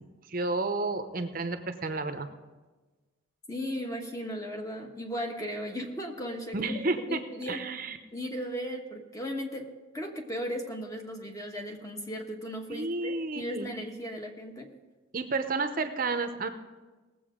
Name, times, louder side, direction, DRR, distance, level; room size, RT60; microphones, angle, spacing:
voice 1, 0.0-2.3 6.5-7.2 7.5-8.0 12.7-13.7 15.1-16.5, right 3 dB, 45° right, 8 dB, 0.7 m, -31 dB
voice 2, 3.5-7.6 8.1-9.7 9.9-14.7, equal, 15° left, 2 dB, 1.3 m, -36 dB
18.5 x 7.7 x 5.0 m, 1.3 s
head